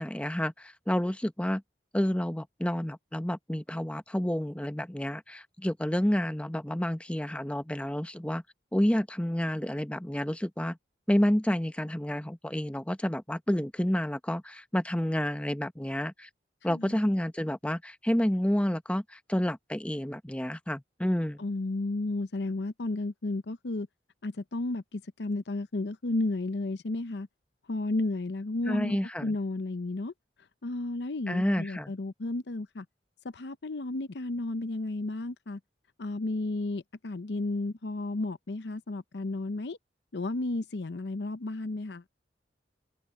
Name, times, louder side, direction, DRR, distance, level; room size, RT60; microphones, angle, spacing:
voice 1, 0.0-1.6 1.9-8.4 8.7-10.8 11.1-16.3 16.6-21.4 28.7-29.3 31.3-31.9, equal, 5° left, 0.8 m, -29 dB
voice 2, 16.7-17.1 21.4-23.9 24.2-27.3 27.7-30.1 30.6-32.8 33.3-35.6 36.0-39.8 40.1-42.0, left 2 dB, 65° left, 0.7 m, -33 dB
head